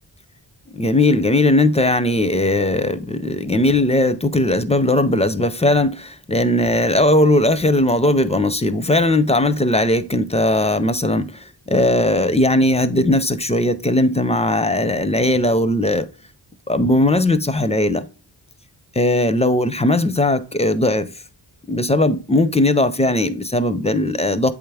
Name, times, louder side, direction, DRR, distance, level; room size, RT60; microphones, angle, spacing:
voice 1, 0.7-11.3 11.7-16.1 16.7-18.1 19.0-21.1 21.7-24.5, left 1 dB, 15° left, 0.4 m, -18 dB
8.3 x 3.4 x 3.4 m
wide cardioid pair, 80°, 45 cm